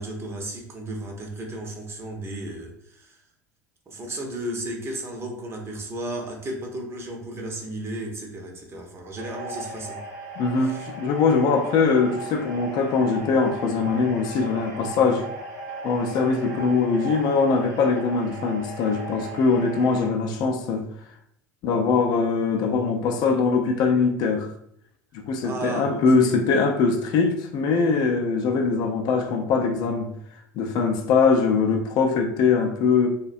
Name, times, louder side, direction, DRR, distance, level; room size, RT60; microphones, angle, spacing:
voice 1, 0.0-3.2 3.9-10.0 10.6-10.9 25.4-26.4, right 1 dB, 25° right, 1 dB, 0.6 m, -34 dB
sound 1, 9.2-20.1, right 2 dB, 65° right, 0.9 m, -37 dB
voice 2, 10.4-15.2 15.8-20.9 21.6-24.5 25.1-30.1 30.6-33.1, left 4 dB, 45° left, 3 dB, 0.4 m, -22 dB
2.5 x 2.1 x 2.4 m, 0.71 s
hypercardioid pair, 75°, 9 cm